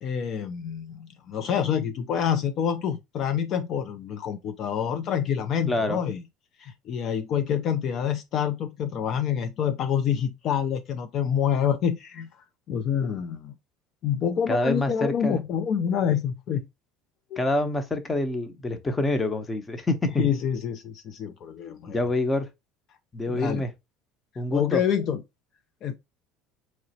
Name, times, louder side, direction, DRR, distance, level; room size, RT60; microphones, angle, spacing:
voice 1, 0.0-6.2 6.6-12.3 12.7-13.5 14.0-16.7 17.3-17.4 20.2-22.0 23.2-23.6 24.5-25.2 25.8-26.0, left 8 dB, 45° left, 0.3 m, -27 dB
voice 2, 5.7-6.0 14.5-15.4 17.4-20.3 21.9-22.5 23.1-23.7 24.4-24.8, left 2 dB, 15° left, 0.6 m, -26 dB
3.9 x 3.0 x 2.7 m
cardioid pair, 130°, 0 cm